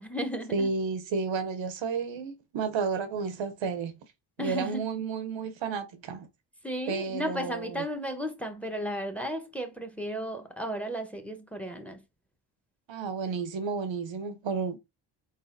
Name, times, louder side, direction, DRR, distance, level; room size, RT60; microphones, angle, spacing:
voice 1, 0.0-0.7 4.4-4.8 6.6-12.0, equal, 5° left, 1.0 m, -34 dB
voice 2, 0.5-4.0 4.4-6.3 6.9-7.8 12.9-14.8, right 5 dB, 65° right, 0.8 m, -32 dB
4.0 x 3.9 x 2.6 m
supercardioid pair, 55°, 49 cm